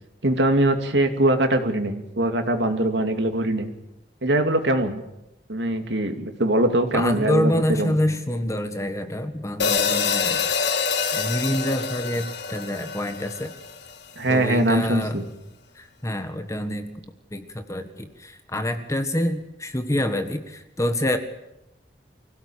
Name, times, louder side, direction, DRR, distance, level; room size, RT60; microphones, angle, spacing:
voice 1, 0.2-3.7 4.2-5.0 5.5-7.5 7.8-7.9 14.2-15.3, right 1 dB, 85° right, 6 dB, 2.6 m, -22 dB
voice 2, 6.9-10.5 11.1-13.5 14.3-15.2 15.7-16.9 17.3-21.2, left 1 dB, 20° left, 8 dB, 1.6 m, -26 dB
sound 1, 9.6-14.0, left 5 dB, 70° left, 1.8 m, -26 dB
25.0 x 16.5 x 8.8 m, 0.89 s
head